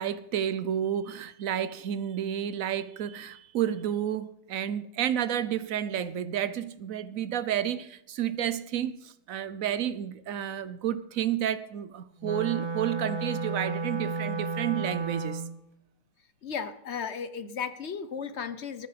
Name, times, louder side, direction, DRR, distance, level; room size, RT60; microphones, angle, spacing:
voice 1, 0.0-15.4, right 10 dB, 65° right, 1.2 m, -31 dB
Wind instrument woodwind instrument, 12.2-15.6, right 3 dB, 25° right, 0.7 m, -32 dB
voice 2, 16.4-18.9, left 6 dB, 50° left, 1.0 m, -35 dB
19.5 x 9.4 x 5.1 m
omnidirectional pair, 1.6 m